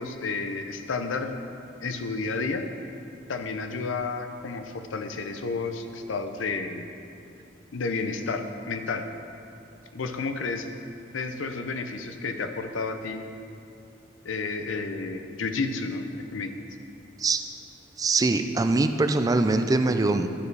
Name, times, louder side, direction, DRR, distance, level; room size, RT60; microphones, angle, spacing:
voice 1, 0.0-1.4 1.8-2.7 3.3-6.8 7.7-9.1 9.9-10.7 11.1-13.2 14.2-16.6, left 4 dB, 80° left, 7 dB, 0.6 m, -31 dB
voice 2, 18.0-20.3, right 3 dB, 20° right, 7 dB, 0.3 m, -23 dB
12.0 x 5.0 x 4.7 m, 2.6 s
head